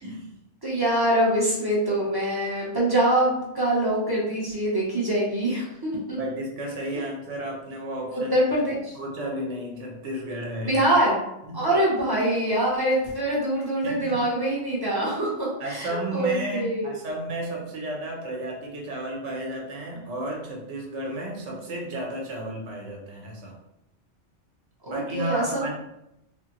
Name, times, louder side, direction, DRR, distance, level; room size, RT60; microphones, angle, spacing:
voice 1, 0.0-0.3 6.2-8.3 8.9-10.8 11.5-11.7 13.8-14.3 15.6-23.6 24.9-25.7, right 1 dB, 90° right, -1 dB, 1.1 m, -33 dB
voice 2, 0.6-6.2 8.1-9.0 10.6-11.2 11.5-17.0 24.8-25.7, right 1 dB, 20° right, -6 dB, 0.8 m, -24 dB
3.4 x 2.1 x 2.9 m, 0.85 s
omnidirectional pair, 1.2 m